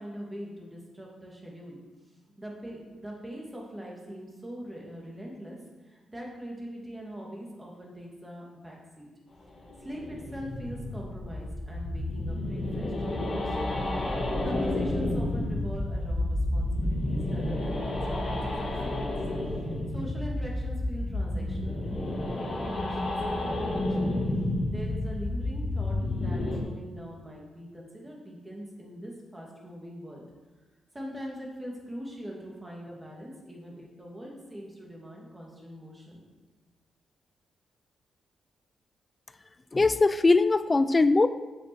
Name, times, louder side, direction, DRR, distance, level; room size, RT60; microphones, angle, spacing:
voice 1, 0.0-1.8 2.4-5.6 5.8-9.1 9.8-13.9 14.2-19.1 19.6-22.5 22.8-24.2 24.7-30.2 30.9-36.2, equal, 10° right, -2 dB, 2.5 m, -42 dB
sound 1, 9.6-26.6, left 1 dB, 40° left, 2.1 m, -30 dB
voice 2, 39.7-41.3, left 3 dB, 20° left, 13 dB, 0.4 m, -21 dB
8.4 x 7.5 x 6.3 m, 1.2 s
wide cardioid pair, 135°, 0 cm